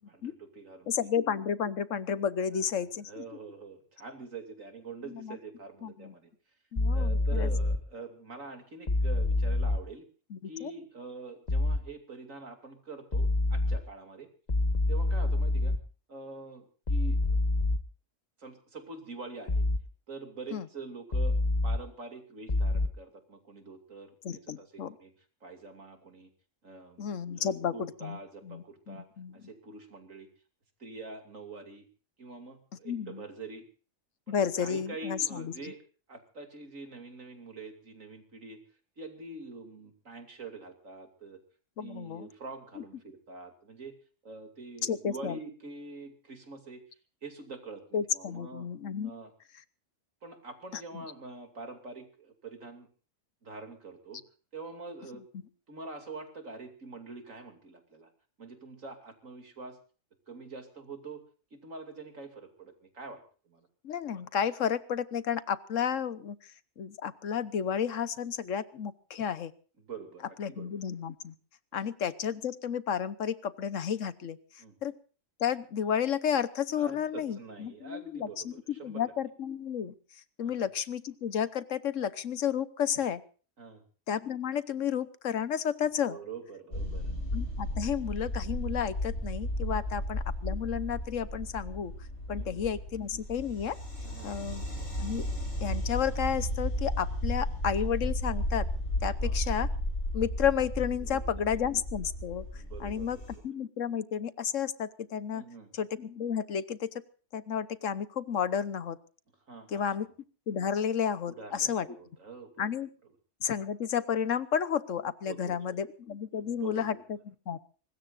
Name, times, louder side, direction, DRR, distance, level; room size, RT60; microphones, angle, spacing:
voice 1, 0.1-0.9 2.5-6.3 6.9-10.0 10.4-14.3 14.9-15.8 16.1-17.4 18.4-19.7 20.1-25.1 25.4-26.3 26.6-29.1 29.3-30.3 30.8-31.9 32.2-33.7 34.3-35.8 36.1-38.6 39.0-41.4 41.8-43.9 44.2-46.8 47.2-48.7 49.0-49.3 50.2-52.9 53.4-54.2 54.5-55.2 55.7-58.1 58.4-59.8 60.3-61.2 61.5-63.7 69.8-70.7 71.7-71.9 74.6-74.7 76.7-79.1 80.4-80.6 83.6-83.8 86.1-87.1 89.7-90.0 92.4-92.6 94.0-94.5 99.2-99.4 101.0-101.6 102.5-103.4 105.3-105.7 109.5-110.0 111.3-112.7 113.0-113.1 115.3-115.7 116.3-117.0, right 3 dB, 80° right, 5 dB, 3.1 m, -45 dB
voice 2, 0.9-3.2 5.1-5.4 5.8-6.1 6.7-7.5 10.3-10.7 20.5-20.6 24.2-24.9 27.0-28.2 28.5-29.4 32.8-33.2 34.3-35.7 41.8-42.3 42.8-42.9 44.8-45.4 47.9-49.1 50.9-51.0 63.8-66.4 66.8-69.5 70.4-71.3 71.7-74.4 74.8-75.0 75.4-78.5 78.8-79.9 80.4-83.2 84.1-86.2 87.3-91.9 92.3-93.8 94.2-94.6 95.0-95.3 95.6-98.7 99.0-99.7 100.1-102.4 102.8-103.2 103.4-105.4 105.7-106.9 107.3-109.0 109.7-110.1 110.5-111.9 112.6-112.9 113.4-117.6, left 8 dB, 75° left, 14 dB, 1.3 m, -32 dB
sound 1, 6.8-7.8 8.9-9.8 11.5-11.8 13.1-13.8 14.5-15.8 16.9-17.8 19.5-19.8 21.1-21.8 22.5-22.9, left 2 dB, 35° left, 1.3 m, -26 dB
sound 2, 86.7-103.4, equal, 55° left, 8.3 m, -34 dB
24.0 x 20.0 x 2.6 m, 0.38 s
omnidirectional pair, 1.3 m